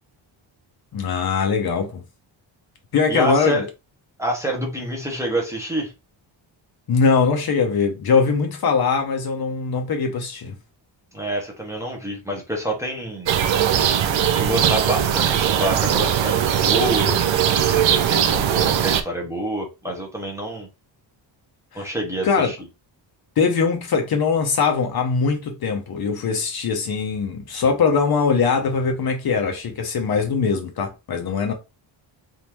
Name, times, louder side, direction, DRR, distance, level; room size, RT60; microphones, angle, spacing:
voice 1, 0.9-2.0 2.9-3.7 6.9-10.5 21.7-21.9 22.2-22.5 23.4-31.5, left 5 dB, 50° left, 0.8 m, -21 dB
voice 2, 3.1-3.7 4.2-5.9 11.1-13.3 14.3-17.2 17.5-20.7 21.7-22.6, right 1 dB, 5° right, 0.8 m, -27 dB
sound 1, 13.3-19.0, right 9 dB, 70° right, 0.6 m, -20 dB
3.6 x 2.6 x 2.9 m
wide cardioid pair, 160°, 48 cm